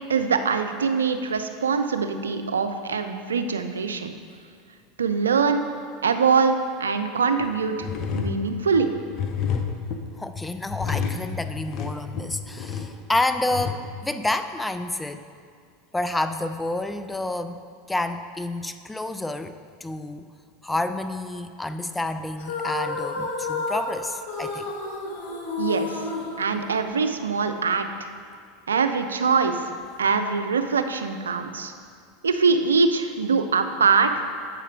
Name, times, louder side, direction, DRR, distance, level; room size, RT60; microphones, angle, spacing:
voice 1, 0.1-4.1 5.0-5.6 6.0-7.9 8.1-8.9 25.6-28.1 28.7-29.6 30.0-31.7 32.2-34.1, right 5 dB, 90° right, 8 dB, 0.4 m, -23 dB
sound 1, 7.4-7.5 7.8-13.7, left 6 dB, 45° left, 0.7 m, -30 dB
voice 2, 10.1-15.2 15.9-17.6 17.9-20.3 20.6-24.7, left 2 dB, 10° left, 10 dB, 0.3 m, -29 dB
sound 2, 22.4-27.2, left 3 dB, 65° left, 1.1 m, -31 dB
8.1 x 4.3 x 5.0 m, 2.2 s
hypercardioid pair, 90°, 0 cm